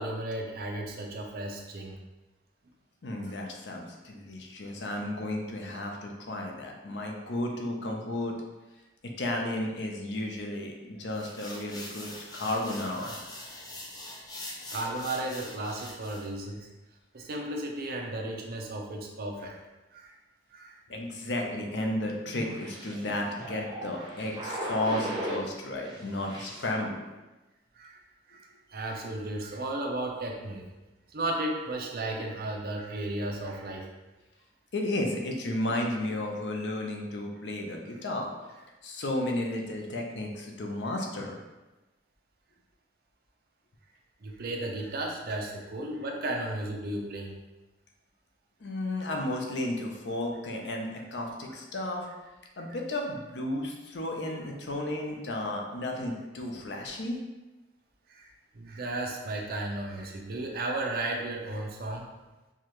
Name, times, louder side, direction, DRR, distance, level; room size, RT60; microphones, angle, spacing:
voice 1, 0.0-2.0 3.2-3.3 14.7-16.7 17.1-19.6 19.9-20.1 20.5-20.8 27.7-28.0 28.3-30.6 31.1-33.9 44.2-47.3 58.1-58.3 58.5-62.1, right 2 dB, 55° right, 1 dB, 0.6 m, -34 dB
voice 2, 3.0-8.3 9.2-13.1 20.9-27.0 34.7-38.3 38.8-41.4 48.6-52.1 52.6-57.2, left 1 dB, 70° left, 1 dB, 0.6 m, -33 dB
sound 1, 11.1-16.3, left 1 dB, 20° left, 0.5 m, -43 dB
sound 2, 21.4-25.5 25.8-26.7, right 1 dB, 25° right, 0.7 m, -38 dB
4.7 x 2.3 x 3.0 m, 1.1 s
head